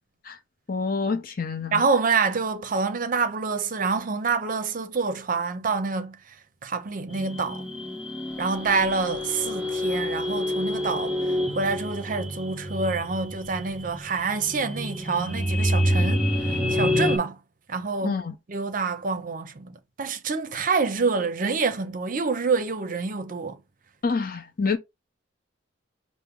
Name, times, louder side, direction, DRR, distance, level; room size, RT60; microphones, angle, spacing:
voice 1, 0.7-1.8 18.0-18.3 24.0-24.8, left 4 dB, 45° left, 0.7 m, -27 dB
voice 2, 1.7-6.4 6.6-7.6 8.4-17.4 17.7-18.2 18.5-23.6, right 4 dB, 45° right, 0.5 m, -27 dB
sound 1, 7.1-17.2, left 1 dB, 5° right, 0.7 m, -27 dB
5.7 x 2.1 x 3.6 m
head